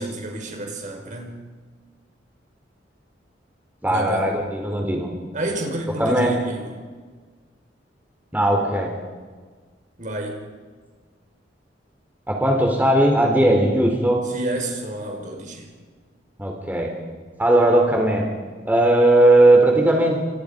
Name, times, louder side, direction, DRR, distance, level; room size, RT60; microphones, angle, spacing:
voice 1, 0.0-1.5 3.9-4.3 5.3-6.7 10.0-10.4 14.3-15.7, right 1 dB, 45° right, 3 dB, 5.3 m, -29 dB
voice 2, 3.8-5.1 6.0-6.4 8.3-8.9 12.3-14.2 16.4-16.9 17.4-18.2 18.7-20.2, right 1 dB, 10° right, 0 dB, 3.9 m, -18 dB
29.5 x 28.0 x 5.3 m, 1.5 s
head